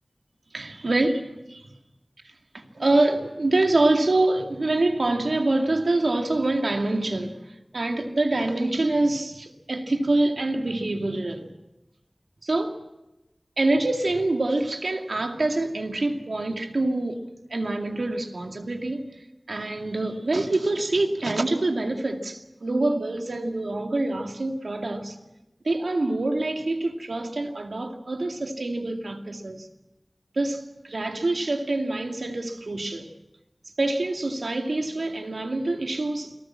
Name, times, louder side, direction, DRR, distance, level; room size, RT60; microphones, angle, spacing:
voice 1, 0.5-1.2 1.5-1.8 2.5-11.5 12.4-12.8 13.6-25.2 25.6-29.7 30.3-33.1 33.8-36.4, right 2 dB, 90° right, 2.2 m, -25 dB
29.0 x 19.0 x 7.5 m
wide cardioid pair, 50°, 0 cm